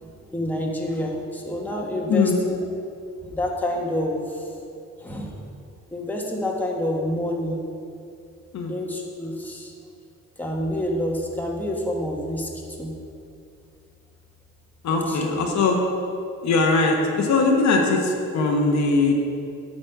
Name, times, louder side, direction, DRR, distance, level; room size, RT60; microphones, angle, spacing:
voice 1, 0.0-2.6 3.3-4.5 5.0-5.4 5.9-7.6 8.7-9.7 10.4-12.5 12.8-12.9 14.9-15.4, left 1 dB, 5° left, -2 dB, 1.4 m, -28 dB
voice 2, 2.1-2.4 8.5-8.8 14.8-15.8 16.4-19.1, left 3 dB, 65° left, 1 dB, 1.2 m, -20 dB
9.2 x 4.3 x 6.8 m, 2.5 s
cardioid pair, 90°, 30 cm